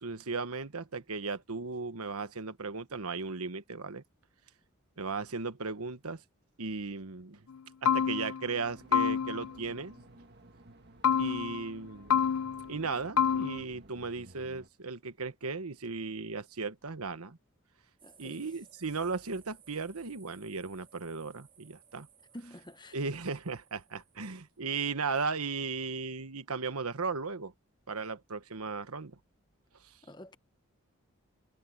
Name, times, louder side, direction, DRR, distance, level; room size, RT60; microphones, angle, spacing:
voice 1, 0.0-4.0 5.0-6.2 6.6-7.4 7.8-9.9 11.2-12.2 12.7-17.4 18.2-22.1 22.9-27.5 27.9-29.2, right 4 dB, 85° right, 1.3 m, -36 dB
sound 1, 7.5-7.6 7.9-8.5 8.9-9.6 11.0-11.7 12.1-12.8 13.2-13.6, left 8 dB, 80° left, 0.7 m, -28 dB
sound 2, 8.6-14.7, right 1 dB, 45° right, 1.9 m, -55 dB
voice 2, 18.0-18.4 22.3-23.0 30.0-30.4, left 1 dB, 20° left, 1.0 m, -48 dB
sound 3, 18.0-24.7, right 8 dB, 25° right, 6.6 m, -61 dB
head